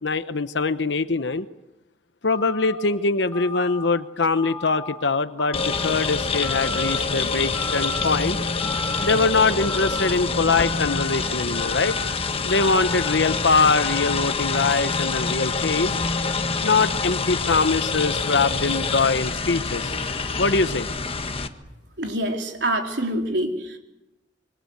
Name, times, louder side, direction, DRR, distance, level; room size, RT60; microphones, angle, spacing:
voice 1, 0.0-1.5 2.2-8.4 9.0-12.0 12.4-16.0 16.6-19.9 20.4-20.9, left 4 dB, 85° left, 11 dB, 1.0 m, -23 dB
Telephone, 2.3-2.8 3.3-3.9 4.4-5.0 5.4-6.0 6.4-7.0 7.5-8.1 8.6-9.1 9.6-10.1 10.6-11.1 11.5-12.1 12.5-13.1 13.5-14.1, left 3 dB, 15° left, 7.2 m, -34 dB
sound 1, 5.5-21.5, left 4 dB, 35° left, 1.4 m, -26 dB
voice 2, 22.0-23.8, right 1 dB, 75° right, 3 dB, 4.0 m, -26 dB
27.0 x 24.0 x 8.0 m, 0.98 s
head